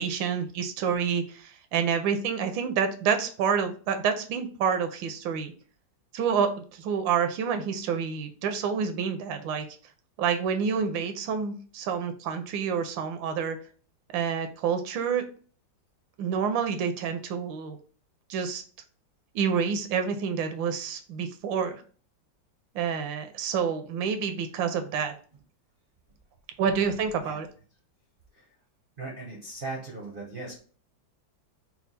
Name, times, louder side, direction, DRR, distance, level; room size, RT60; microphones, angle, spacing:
voice 1, 0.0-5.5 6.1-9.7 10.2-13.6 14.1-15.2 16.2-17.8 18.3-18.6 19.3-21.8 22.7-25.1 26.6-27.5, right 6 dB, 80° right, 8 dB, 1.3 m, -28 dB
voice 2, 29.0-30.6, right 3 dB, 50° right, -2 dB, 0.6 m, -38 dB
4.4 x 2.3 x 4.0 m, 0.41 s
omnidirectional pair, 2.1 m